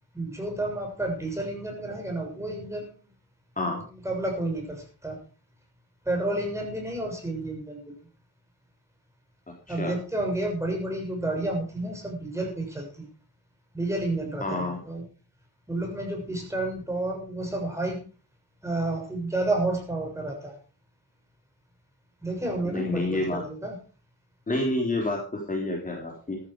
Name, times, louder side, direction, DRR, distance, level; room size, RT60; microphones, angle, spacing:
voice 1, 0.1-2.9 4.0-5.2 6.0-7.9 9.7-13.1 13.7-15.0 15.7-18.0 18.6-20.5 22.2-23.8, right 2 dB, 5° right, 1 dB, 6.8 m, -30 dB
voice 2, 14.4-14.8 22.6-23.4 24.5-26.4, left 2 dB, 20° left, -1 dB, 3.8 m, -28 dB
15.0 x 12.5 x 4.8 m, 0.37 s
cardioid pair, 140°, 38 cm